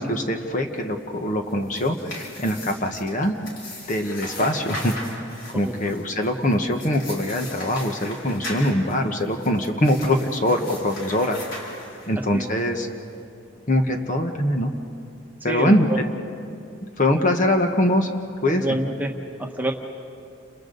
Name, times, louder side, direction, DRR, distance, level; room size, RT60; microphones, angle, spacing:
voice 1, 0.0-3.3 3.9-4.9 5.5-11.4 12.1-12.9 13.7-14.7 15.4-16.0 17.0-18.1 18.4-18.8, left 1 dB, 35° left, 4 dB, 1.2 m, -23 dB
sound 1, 1.4-12.3, left 1 dB, 65° left, 5.2 m, -38 dB
voice 2, 15.4-15.7 18.5-19.1 19.4-19.7, right 1 dB, 10° right, 1 dB, 1.4 m, -27 dB
30.0 x 28.0 x 4.0 m, 2.6 s
head